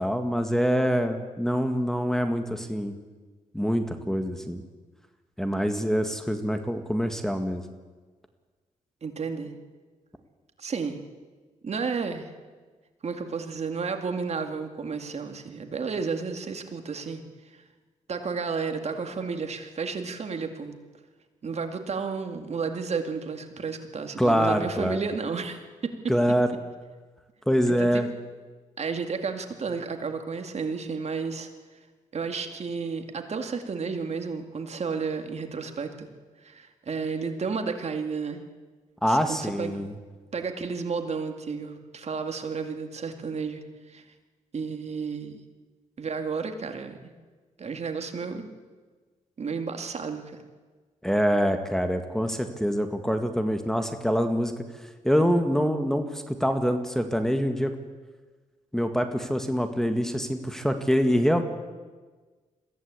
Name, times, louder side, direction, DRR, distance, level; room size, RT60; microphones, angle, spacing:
voice 1, 0.0-3.0 3.5-4.6 5.4-7.6 24.2-25.0 26.1-26.5 27.5-28.1 39.0-39.9 51.0-54.5 55.0-57.7 58.7-61.4, equal, 5° left, 7 dB, 1.8 m, -25 dB
voice 2, 9.0-9.5 10.6-11.0 11.6-12.3 13.0-17.2 17.5-17.6 18.1-20.8 21.4-26.1 27.7-28.0 28.8-31.5 32.1-36.1 36.4-38.4 39.0-39.8 40.3-43.6 43.9-44.0 44.5-45.3 46.0-47.1 47.6-48.5 49.4-50.4, right 5 dB, 50° right, 6 dB, 2.2 m, -32 dB
22.0 x 15.5 x 8.4 m, 1.4 s
cardioid pair, 80°, 14 cm